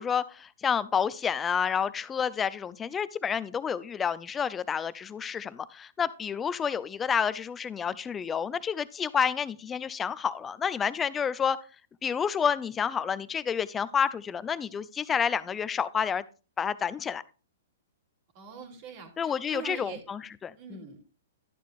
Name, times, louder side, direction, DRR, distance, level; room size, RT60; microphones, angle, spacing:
voice 1, 0.0-11.6 12.0-16.2 16.6-17.2 19.2-20.8, left 7 dB, 15° left, 17 dB, 0.5 m, -29 dB
voice 2, 18.3-20.0 20.5-21.0, right 6 dB, 40° right, 4 dB, 3.0 m, -43 dB
12.0 x 10.0 x 2.6 m, 0.34 s
figure-of-eight pair, 115°, 0 cm